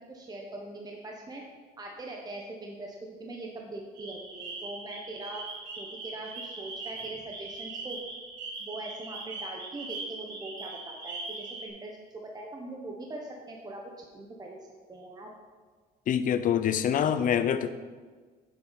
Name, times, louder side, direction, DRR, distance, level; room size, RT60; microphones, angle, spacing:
voice 1, 0.0-1.4 1.8-5.4 5.8-8.0 8.6-14.6 14.9-15.3, right 2 dB, 25° right, 0 dB, 1.1 m, -41 dB
sound 1, 3.9-11.7, right 3 dB, 85° right, 2.3 m, -40 dB
voice 2, 16.1-17.7, left 9 dB, 50° left, 11 dB, 0.6 m, -25 dB
9.0 x 7.3 x 4.2 m, 1.5 s
cardioid pair, 110°, 17 cm